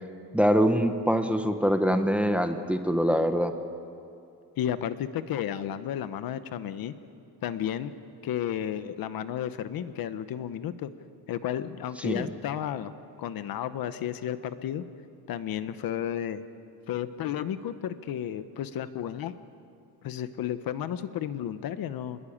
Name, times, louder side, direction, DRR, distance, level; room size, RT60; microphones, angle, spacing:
voice 1, 0.3-3.5 12.0-12.3, equal, 5° right, 7 dB, 0.9 m, -24 dB
voice 2, 4.6-6.9 7.4-7.9 8.2-10.9 11.3-12.9 13.2-14.8 15.3-16.4 16.9-19.3 20.0-22.2, left 10 dB, 55° left, 12 dB, 1.0 m, -32 dB
26.5 x 21.0 x 8.7 m, 2.5 s
cardioid pair, 175°, 41 cm